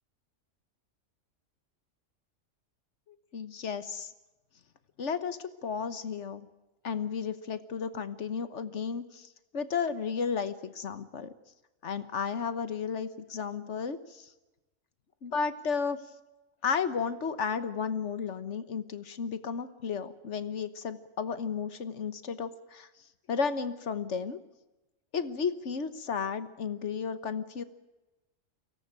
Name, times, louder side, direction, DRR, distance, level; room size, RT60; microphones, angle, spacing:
voice 1, 3.1-4.1 5.0-6.5 6.8-9.3 9.5-11.3 11.8-14.3 15.2-16.0 16.6-22.9 23.3-24.4 25.1-27.6, left 6 dB, 65° left, 12 dB, 1.5 m, -33 dB
23.5 x 17.5 x 8.9 m, 1.1 s
omnidirectional pair, 1.3 m